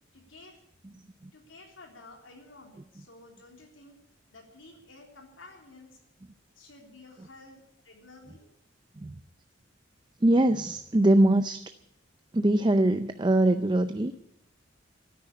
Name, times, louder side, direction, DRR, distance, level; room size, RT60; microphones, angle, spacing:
voice 1, 0.1-0.6 1.3-4.0 4.3-6.0 6.6-8.5, left 2 dB, 90° left, 2 dB, 3.6 m, -52 dB
voice 2, 10.2-11.6 12.3-14.2, right 1 dB, 25° right, 10 dB, 0.5 m, -23 dB
13.0 x 10.0 x 9.9 m, 0.83 s
head